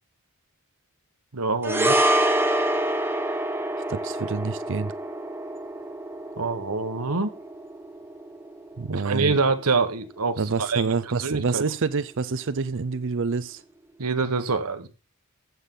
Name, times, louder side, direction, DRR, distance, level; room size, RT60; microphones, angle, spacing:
voice 1, 1.3-2.1 6.4-7.4 8.9-11.6 14.0-14.9, right 4 dB, 90° right, 1.4 m, -26 dB
sound 1, 1.6-10.1 10.4-10.6, right 1 dB, 10° right, 1.0 m, -27 dB
voice 2, 3.9-4.9 8.8-9.3 10.4-13.6, right 4 dB, 60° right, 0.6 m, -27 dB
15.0 x 7.5 x 3.9 m
head